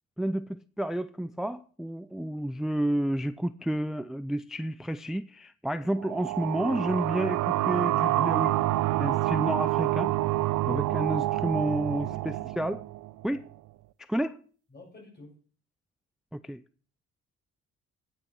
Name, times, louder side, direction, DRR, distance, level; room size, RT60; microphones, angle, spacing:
voice 1, 0.2-8.6 9.0-10.1 10.7-12.8 13.2-13.4 14.1-14.4 16.3-16.6, right 1 dB, ahead, 0.4 m, -30 dB
sound 1, 6.0-13.4, right 16 dB, 85° right, 0.7 m, -27 dB
voice 2, 11.7-12.5 14.7-15.4, left 1 dB, 35° left, 5.9 m, -49 dB
10.5 x 7.0 x 7.9 m
cardioid pair, 90°, 30 cm